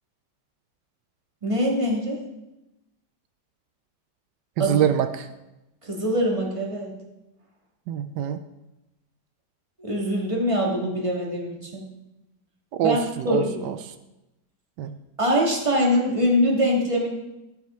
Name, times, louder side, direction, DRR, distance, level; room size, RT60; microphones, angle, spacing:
voice 1, 1.4-2.2 4.6-4.7 5.8-6.9 9.8-11.8 12.8-13.0 13.2-13.7 15.2-17.1, equal, 20° right, -2 dB, 2.1 m, -23 dB
voice 2, 4.6-5.3 7.9-8.4 12.7-13.7 14.8-14.9, right 9 dB, 85° right, 10 dB, 1.2 m, -25 dB
13.5 x 8.2 x 4.4 m, 0.97 s
omnidirectional pair, 1.8 m